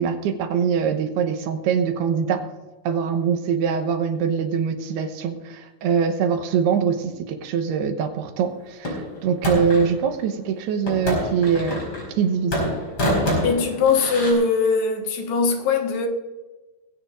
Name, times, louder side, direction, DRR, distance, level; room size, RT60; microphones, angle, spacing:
voice 1, 0.0-2.4 2.8-11.8 12.2-12.7, right 6 dB, 80° right, 3.0 m, -23 dB
sound 1, 8.8-9.9 10.9-12.2 12.5-14.3, equal, 30° left, 5.2 m, -26 dB
voice 2, 13.4-16.1, left 4 dB, 75° left, 3.5 m, -21 dB
20.0 x 16.0 x 2.5 m
omnidirectional pair, 4.7 m